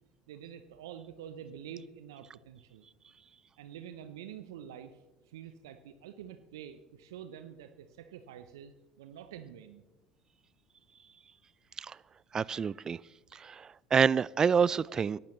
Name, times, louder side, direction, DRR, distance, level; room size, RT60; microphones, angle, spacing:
voice 1, 0.3-2.9 3.6-9.8, right 9 dB, 75° right, 0.7 m, -47 dB
voice 2, 12.3-13.0 13.3-15.2, right 6 dB, 30° right, 0.3 m, -28 dB
22.5 x 11.5 x 3.2 m
hypercardioid pair, 65°, 2 cm